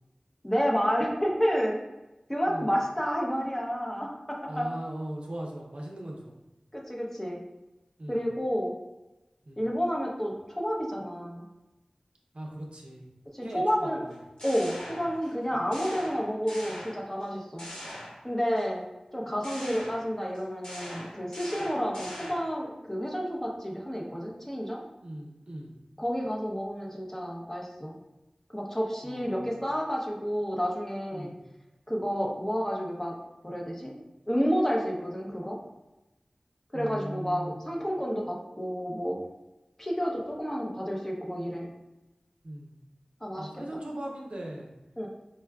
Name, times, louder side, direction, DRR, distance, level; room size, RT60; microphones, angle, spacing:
voice 1, 0.4-1.8 2.3-4.7 6.7-7.4 8.1-8.7 9.6-11.4 13.3-14.1 14.4-17.7 18.2-18.8 19.1-24.8 26.0-28.0 28.5-31.3 31.9-33.2 33.4-33.9 34.3-35.6 36.7-39.2 39.8-41.7 43.2-43.5 45.0-45.1, equal, 15° left, -1 dB, 0.6 m, -30 dB
voice 2, 4.5-6.3 8.0-8.2 9.5-9.7 12.3-13.1 13.4-14.1 15.5-15.6 25.0-25.7 29.0-29.7 31.1-31.4 36.7-37.6 42.4-42.8 43.4-44.7, right 1 dB, 60° right, -1 dB, 0.6 m, -39 dB
sound 1, 14.1-15.4 15.7-17.3 17.6-18.6 19.4-22.6, equal, 40° left, 1.1 m, -42 dB
4.5 x 2.2 x 2.2 m, 1.0 s
wide cardioid pair, 45°, 2 cm